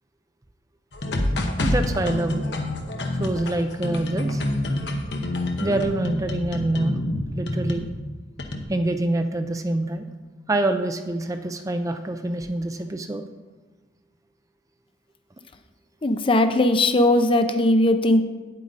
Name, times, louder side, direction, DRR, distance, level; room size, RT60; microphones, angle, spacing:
sound 1, 0.9-8.0 8.4-8.6, left 1 dB, 75° left, 1.1 m, -27 dB
voice 1, 1.6-2.4 3.1-4.4 5.6-7.0 7.3-7.9 8.7-10.1 10.5-13.2, right 1 dB, 20° right, 7 dB, 0.5 m, -25 dB
voice 2, 16.0-18.2, left 1 dB, 30° left, 8 dB, 0.6 m, -19 dB
9.1 x 8.3 x 4.1 m, 1.3 s
head